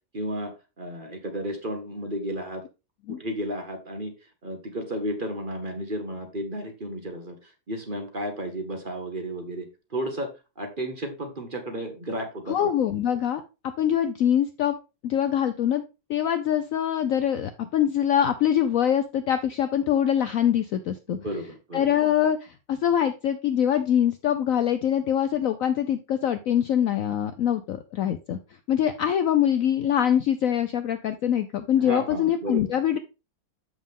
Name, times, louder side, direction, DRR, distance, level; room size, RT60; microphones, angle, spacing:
voice 1, 0.1-2.6 3.1-4.1 4.4-10.3 10.6-12.7 21.1-21.9 31.8-32.6, right 1 dB, 35° right, 5 dB, 1.2 m, -33 dB
voice 2, 12.5-13.4 13.8-15.8 16.1-21.2 21.7-28.4 28.7-33.0, left 10 dB, 70° left, 9 dB, 0.8 m, -24 dB
7.4 x 6.2 x 3.5 m, 0.28 s
omnidirectional pair, 1.9 m